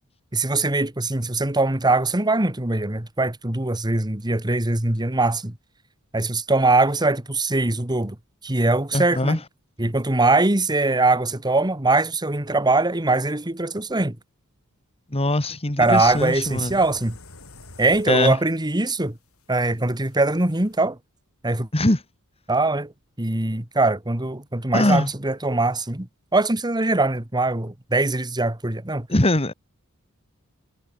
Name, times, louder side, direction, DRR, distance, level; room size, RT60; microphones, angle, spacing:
voice 1, 0.3-5.6 6.1-8.2 8.4-9.4 9.8-14.2 15.8-17.2 17.8-19.2 19.5-21.0 21.4-21.7 22.5-22.9 23.2-26.1 26.3-29.1, right 2 dB, 20° right, 1.8 m, -22 dB
voice 2, 8.9-9.4 15.1-16.7 18.1-18.4 21.7-22.0 24.7-25.1 29.1-29.5, left 1 dB, 30° left, 2.1 m, -21 dB
sound 1, 15.9-20.8, left 3 dB, 80° left, 5.0 m, -47 dB
head